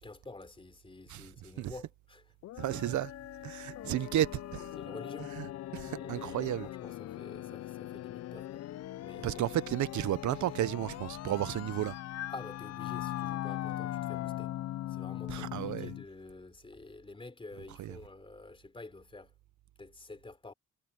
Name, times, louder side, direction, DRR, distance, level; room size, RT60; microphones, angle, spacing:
voice 1, 0.0-3.0 3.8-4.2 4.8-5.3 5.8-8.7 9.0-9.4 12.3-14.5 14.9-19.3 19.8-20.5, left 3 dB, 15° left, 3.6 m, -49 dB
sound 1, 2.4-16.0, left 14 dB, 60° left, 0.5 m, -40 dB
voice 2, 2.6-3.1 3.4-4.7 5.4-5.5 5.7-6.7 9.2-11.9 15.3-15.9 17.8-17.9, right 13 dB, 75° right, 0.9 m, -32 dB
cardioid pair, 90°, 30 cm